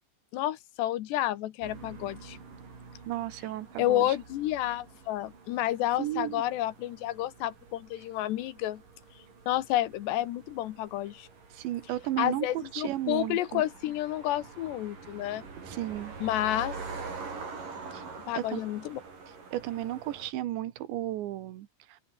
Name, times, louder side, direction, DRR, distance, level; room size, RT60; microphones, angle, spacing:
voice 1, 0.3-2.4 3.8-8.8 9.5-11.3 12.2-15.4 16.2-16.8 18.3-19.0, left 14 dB, 75° left, 3.2 m, -30 dB
sound 1, 1.6-20.3, right 4 dB, 45° right, 7.4 m, -46 dB
voice 2, 3.1-4.2 6.0-6.5 11.5-13.6 15.6-16.1 17.9-18.1 18.4-18.6 19.5-22.0, right 14 dB, 80° right, 3.6 m, -34 dB
omnidirectional pair, 5.2 m